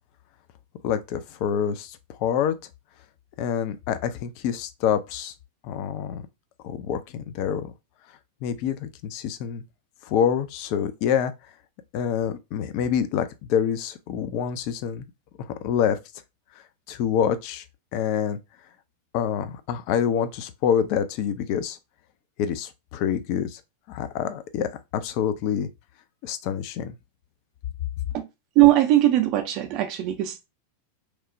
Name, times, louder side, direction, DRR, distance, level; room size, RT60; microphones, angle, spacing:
voice 1, 0.8-2.5 3.4-5.3 5.6-6.2 6.6-7.7 8.4-9.6 10.0-11.3 11.9-15.1 15.4-16.0 16.9-17.6 17.9-18.4 19.1-21.8 22.4-23.6 23.9-25.7 26.2-26.9, left 8 dB, 45° left, 0.3 m, -26 dB
voice 2, 28.6-30.5, right 15 dB, 40° right, 0.4 m, -20 dB
3.0 x 2.0 x 2.5 m
figure-of-eight pair, 90°, 0 cm